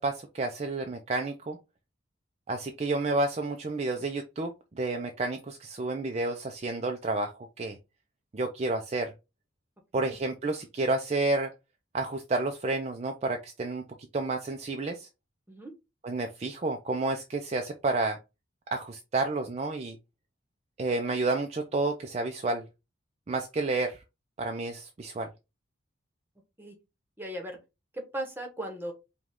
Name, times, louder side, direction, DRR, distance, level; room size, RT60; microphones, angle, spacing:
voice 1, 0.0-1.6 2.5-7.8 8.3-9.1 9.9-11.5 11.9-13.8 14.1-15.1 16.0-18.2 18.7-20.0 20.8-22.6 23.3-24.0 24.4-25.3, right 2 dB, 35° right, 0.4 m, -30 dB
voice 2, 27.2-27.6 27.9-28.9, right 1 dB, 10° right, 1.0 m, -37 dB
5.0 x 2.3 x 3.5 m
head